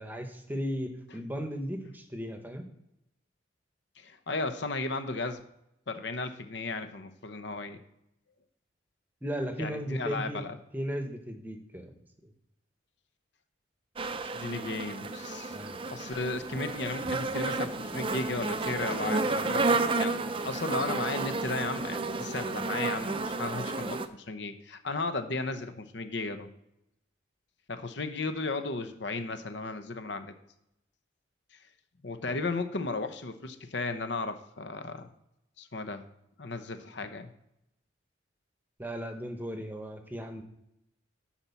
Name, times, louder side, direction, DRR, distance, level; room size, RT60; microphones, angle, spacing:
voice 1, 0.0-2.7 9.2-10.4 10.7-11.9 12.2-12.3 15.5-15.8 38.8-40.4, equal, 10° right, 5 dB, 1.0 m, -36 dB
voice 2, 4.0-5.4 5.9-7.8 9.6-10.6 14.3-15.6 15.8-20.1 20.4-26.5 27.7-30.3 31.5-31.6 32.0-35.1 35.6-36.0 36.4-37.3, left 3 dB, 65° left, 9 dB, 0.9 m, -35 dB
sound 1, 14.0-24.1, right 3 dB, 30° right, 0.5 m, -31 dB
11.5 x 4.4 x 6.9 m, 0.82 s
head